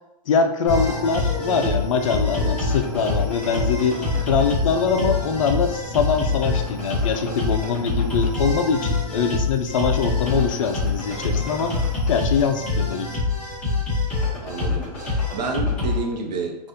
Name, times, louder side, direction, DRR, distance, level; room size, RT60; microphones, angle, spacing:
voice 1, 0.3-11.8 12.1-13.1, left 5 dB, 50° left, 6 dB, 0.4 m, -23 dB
sound 1, 0.7-16.0, left 3 dB, 5° left, 0.9 m, -25 dB
sound 2, 0.7-4.3 4.7-5.9, right 2 dB, 20° right, 0.4 m, -36 dB
voice 2, 14.1-16.7, right 4 dB, 80° right, 2 dB, 0.8 m, -30 dB
3.5 x 2.4 x 2.7 m, 0.91 s
hypercardioid pair, 170°, 21 cm